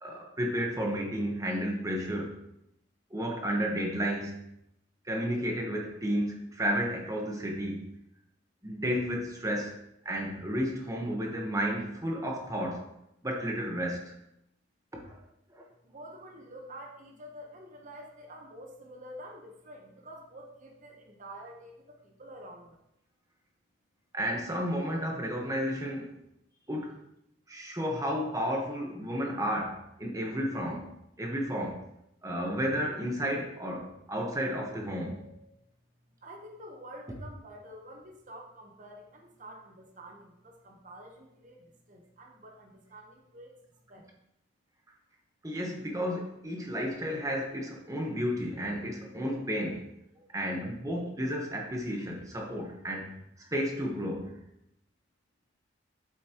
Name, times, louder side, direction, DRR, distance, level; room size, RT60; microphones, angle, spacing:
voice 1, 0.0-2.4 3.1-4.4 5.0-7.9 8.6-9.8 10.0-12.9 13.2-14.1 14.9-15.2 15.5-15.6 24.1-26.1 26.7-27.0 27.5-30.9 31.2-31.8 32.2-35.5 45.4-49.9 50.3-53.1 53.4-54.4, equal, 20° right, 0 dB, 1.2 m, -32 dB
voice 2, 15.8-21.7 22.0-22.8 36.2-43.5 43.9-44.0, right 1 dB, 45° right, 1 dB, 1.1 m, -48 dB
8.3 x 8.0 x 3.0 m, 0.80 s
head